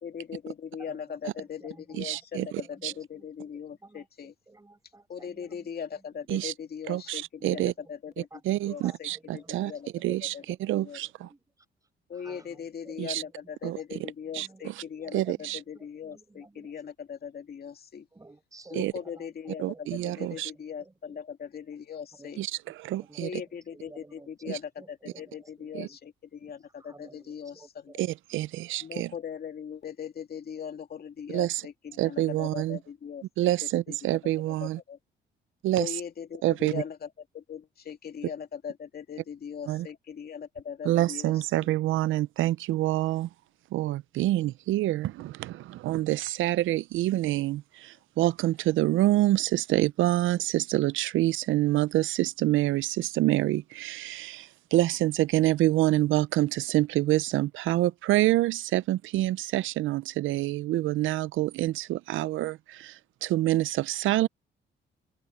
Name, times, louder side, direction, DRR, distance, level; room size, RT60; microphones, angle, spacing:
voice 1, 0.0-4.3 5.1-8.3 8.6-10.4 10.8-11.3 12.1-18.1 18.7-22.4 23.2-28.0 28.8-34.2 34.5-35.0 35.8-41.7, left 7 dB, 50° left, 2.4 m, -40 dB
voice 2, 0.9-2.2 2.6-3.3 3.8-5.7 7.4-7.6 8.3-8.4 8.8-11.4 12.1-13.5 14.3-16.7 18.1-19.8 20.2-21.2 22.2-22.4 22.9-23.3 23.7-26.0 26.8-28.1, right 2 dB, 15° right, 6.6 m, -54 dB
voice 3, 2.0-2.5 2.8-2.9 6.3-6.5 6.9-7.7 8.5-9.7 10.0-11.3 13.0-13.2 13.6-13.8 14.3-14.5 15.1-15.6 18.7-18.9 19.6-20.5 22.4-22.5 22.8-23.4 24.5-24.6 25.7-25.9 28.0-29.1 31.3-31.6 32.0-32.8 33.4-34.8 35.6-35.9 36.4-36.8 39.7-39.9 40.8-43.3 43.7-64.3, right 15 dB, 80° right, 0.5 m, -27 dB
open air
cardioid pair, 90°, 20 cm